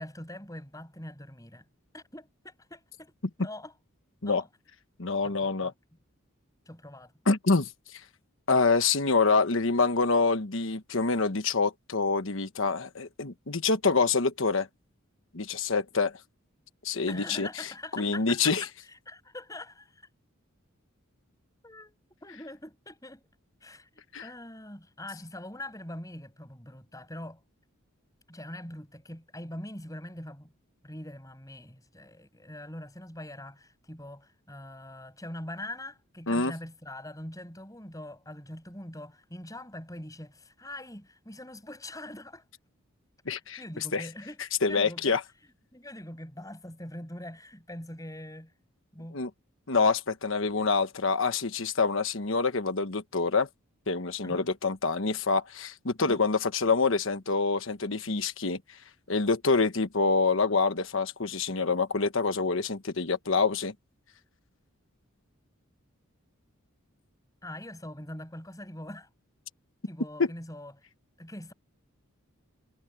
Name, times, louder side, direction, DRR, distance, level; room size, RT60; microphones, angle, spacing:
voice 1, 0.0-1.6 1.9-3.1 3.4-3.7 4.2-4.5 5.2-5.7 6.7-7.1 17.1-20.0 21.6-23.2 23.6-27.4 28.3-30.5 30.8-42.4 43.6-45.2 45.7-48.5 48.9-49.2 54.2-54.5 56.0-56.2 67.4-69.1 69.8-70.7 71.2-71.5, left 1 dB, 15° left, 6.5 m, -43 dB
voice 2, 5.0-5.7 7.3-7.7 8.5-14.7 15.3-16.2 16.8-17.7 17.9-18.6 24.1-24.3 36.3-36.5 43.3-43.6 43.9-44.1 44.6-45.2 49.1-49.3 49.7-53.5 53.9-58.6 59.1-63.7, left 4 dB, 60° left, 1.2 m, -26 dB
head